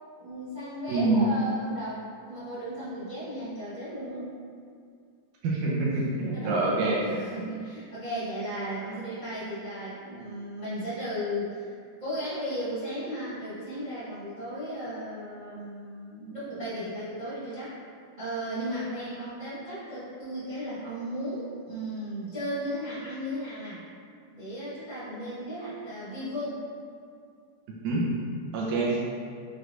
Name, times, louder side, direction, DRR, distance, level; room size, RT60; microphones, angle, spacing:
voice 1, 0.2-4.3 6.3-6.7 7.0-11.7 12.0-17.7 18.2-23.8 24.3-26.6, equal, 55° right, -13 dB, 0.5 m, -35 dB
voice 2, 0.9-1.3 5.4-7.3 27.8-28.0 28.5-29.0, right 3 dB, 80° right, -4 dB, 2.1 m, -26 dB
6.0 x 3.3 x 2.6 m, 2.2 s
omnidirectional pair, 3.6 m